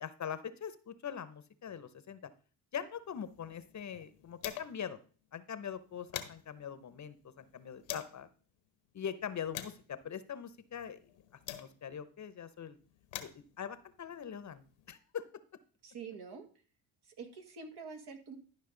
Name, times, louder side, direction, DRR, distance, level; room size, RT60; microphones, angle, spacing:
voice 1, 0.0-2.3 2.7-5.0 5.3-8.3 8.9-11.0 11.5-12.8 13.2-15.3, left 8 dB, 40° left, 14 dB, 0.8 m, -42 dB
sound 1, 3.1-4.9 5.3-5.4 5.7-8.2 8.9-12.1 12.8-15.0, left 12 dB, 85° left, 1.1 m, -48 dB
voice 2, 15.8-16.5 17.0-18.4, right 5 dB, 65° right, 5 dB, 1.7 m, -46 dB
12.0 x 5.2 x 3.8 m, 0.40 s
supercardioid pair, 70°, 44 cm